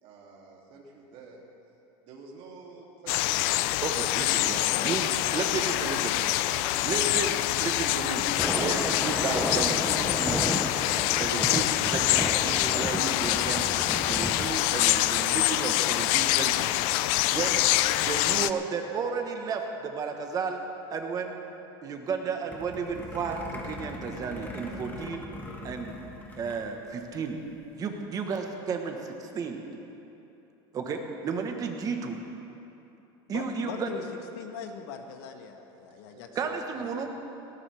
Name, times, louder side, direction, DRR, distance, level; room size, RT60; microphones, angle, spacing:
voice 1, 0.0-1.4 2.0-3.7 4.3-6.7 36.1-36.2 36.7-37.0, right 4 dB, 50° right, -2 dB, 3.0 m, -48 dB
sound 1, 3.1-18.5, left 16 dB, 60° left, 0.4 m, -26 dB
voice 2, 3.8-4.6 4.8-5.1 5.3-6.1 6.8-10.5 11.2-13.6 14.0-16.7 17.3-17.7 18.0-20.6 20.9-21.4 21.8-25.2 25.6-25.9 26.4-27.4 27.8-29.6 30.7-32.2 33.3-33.9 36.3-37.1, right 5 dB, 30° right, 4 dB, 1.3 m, -33 dB
Thunder, 8.2-14.5, right 1 dB, ahead, 0.6 m, -33 dB
sound 2, 22.5-26.6 26.9-27.0 27.3-27.6, left 1 dB, 15° left, 1.7 m, -41 dB
voice 3, 33.3-34.0 34.3-36.3 36.8-37.1, left 7 dB, 80° left, 5 dB, 1.4 m, -41 dB
18.0 x 18.0 x 3.5 m, 2.9 s
supercardioid pair, 145°, 12 cm